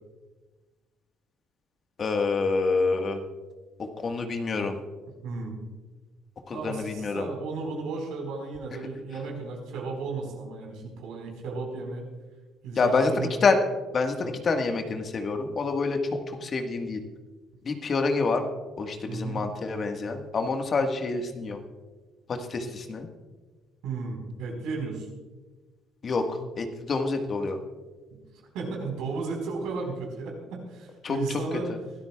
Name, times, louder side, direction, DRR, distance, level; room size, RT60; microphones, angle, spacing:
voice 1, 2.0-3.2 3.8-4.8 6.5-7.3 12.8-13.6 13.9-17.0 17.6-18.4 18.8-21.6 22.3-23.1 26.0-27.6 31.0-31.2, left 4 dB, 45° left, 5 dB, 1.6 m, -27 dB
voice 2, 5.2-5.6 6.5-12.1 12.6-13.3 14.1-14.3 19.1-19.5 23.8-25.1 28.1-28.2 28.5-31.7, right 4 dB, 75° right, 1 dB, 4.4 m, -34 dB
23.5 x 13.0 x 2.4 m, 1.3 s
supercardioid pair, 70°, 0 cm